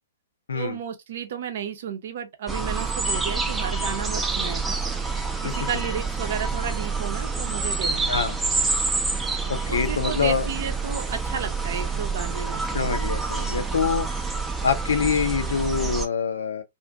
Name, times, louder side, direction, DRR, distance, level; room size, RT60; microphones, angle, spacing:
voice 1, 0.5-4.8 5.4-8.1 9.7-12.8, right 7 dB, 55° right, 0.6 m, -33 dB
sound 1, 2.5-16.1, right 4 dB, 5° right, 0.5 m, -27 dB
voice 2, 9.5-10.4 12.7-14.1 14.6-16.6, left 6 dB, 65° left, 0.5 m, -25 dB
2.6 x 2.5 x 2.3 m
figure-of-eight pair, 115°, 0 cm